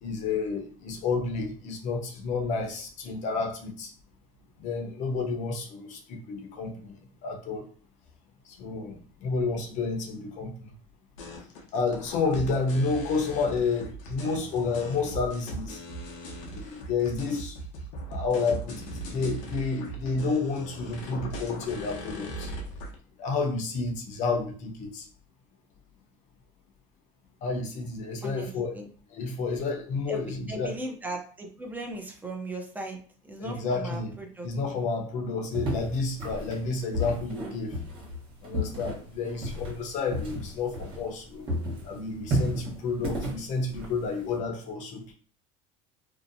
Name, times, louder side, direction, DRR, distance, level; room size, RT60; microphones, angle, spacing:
voice 1, 0.0-3.9 4.6-6.9 7.2-7.7 8.6-10.7 11.7-15.8 16.5-17.5 18.1-22.5 23.2-25.1 27.4-28.7 29.1-30.7 33.4-34.1 34.4-37.7 38.4-41.5 41.8-45.1, left 4 dB, 50° left, 3 dB, 0.7 m, -30 dB
sound 1, 11.2-23.0, right 1 dB, 90° left, 0.7 m, -39 dB
voice 2, 28.2-28.9 30.1-33.0 33.2-34.5, right 2 dB, 10° right, 2 dB, 0.5 m, -37 dB
sound 2, 35.5-41.2 41.5-44.4, equal, 35° right, 1.0 m, -33 dB
2.7 x 2.1 x 2.6 m, 0.43 s
supercardioid pair, 125°, 16 cm